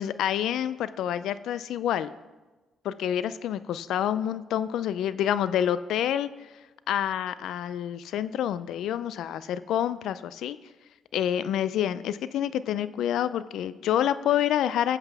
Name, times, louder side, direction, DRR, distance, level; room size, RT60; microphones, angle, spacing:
voice 1, 0.0-2.1 2.8-6.5 6.9-10.6 11.1-15.0, left 10 dB, 80° left, 15 dB, 0.4 m, -28 dB
14.5 x 8.0 x 3.5 m, 1.2 s
cardioid pair, 90°, 0 cm